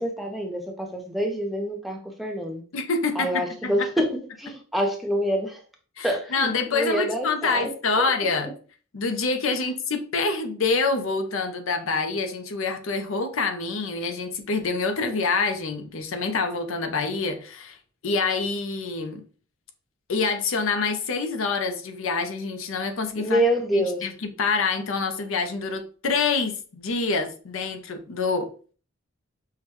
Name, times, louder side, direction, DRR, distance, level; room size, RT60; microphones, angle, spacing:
voice 1, 0.0-2.6 3.1-5.6 6.0-8.1 23.2-24.1, equal, ahead, 2 dB, 0.5 m, -27 dB
voice 2, 2.7-3.7 6.0-8.5 8.9-17.8 18.0-19.2 20.1-23.4 23.7-24.1 24.4-28.5, left 4 dB, 75° left, 7 dB, 0.6 m, -26 dB
5.6 x 2.2 x 3.0 m, 0.40 s
head